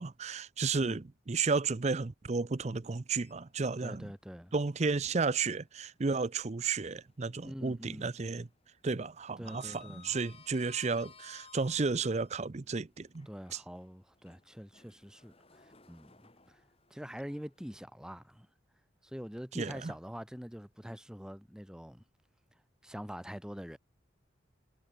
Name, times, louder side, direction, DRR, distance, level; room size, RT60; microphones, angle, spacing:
voice 1, 0.0-4.0 4.5-8.5 8.8-13.6 19.6-19.9, right 4 dB, 35° right, 0.5 m, -33 dB
Sliding door, 3.1-4.1 4.5-4.6 6.3-7.3 7.6-8.0 8.3-12.4 13.0-18.2, left 5 dB, 30° left, 4.4 m, -59 dB
voice 2, 3.8-4.5 7.4-8.1 9.4-10.2 13.3-16.6 16.9-18.5 19.0-22.0 22.5-23.8, equal, 5° right, 1.1 m, -45 dB
head